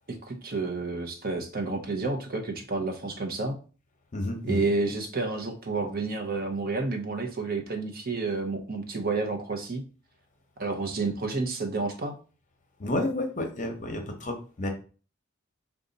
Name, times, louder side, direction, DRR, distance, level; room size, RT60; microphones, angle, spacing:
voice 1, 0.1-3.6 4.4-9.8 10.6-12.1, right 3 dB, 50° right, 5 dB, 0.8 m, -30 dB
voice 2, 4.1-4.6 12.8-14.7, left 1 dB, 40° left, 4 dB, 0.8 m, -30 dB
5.1 x 2.3 x 3.9 m, 0.37 s
head